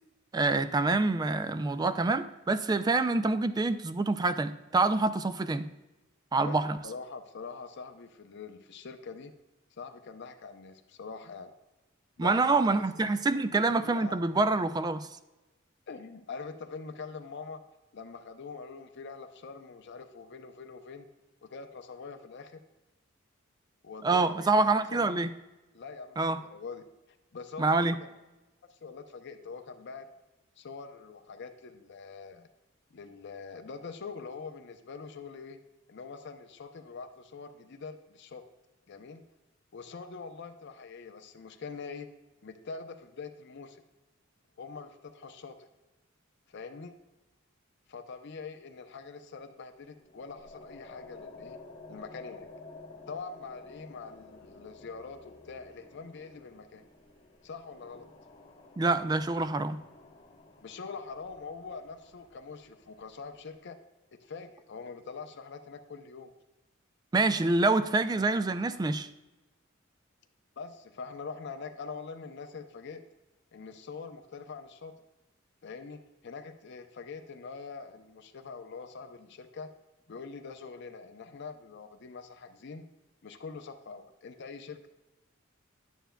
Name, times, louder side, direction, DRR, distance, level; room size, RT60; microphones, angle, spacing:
voice 1, 0.3-5.7 6.3-6.8 12.2-15.1 24.0-25.3 26.2-26.4 27.6-28.0 58.8-59.8 67.1-69.1, right 3 dB, 20° right, 12 dB, 0.3 m, -26 dB
voice 2, 6.8-9.3 9.8-11.5 12.2-12.8 14.0-14.6 15.9-17.6 17.9-21.1 21.4-22.6 23.8-24.5 24.9-25.2 25.7-26.8 27.3-28.1 28.7-30.1 30.6-32.5 32.9-35.6 35.9-38.4 38.9-39.2 39.7-42.1 42.4-43.8 44.6-45.7 46.5-46.9 47.9-51.6 51.9-52.5 53.1-56.8 57.4-58.1 60.6-63.8 64.1-66.3 70.6-73.0 73.5-74.9 75.6-79.7 80.1-82.8 83.2-84.9, left 4 dB, 55° left, 6 dB, 0.6 m, -44 dB
sound 1, 50.0-63.6, left 3 dB, 25° left, 1.1 m, -52 dB
10.0 x 9.1 x 2.2 m, 1.1 s
head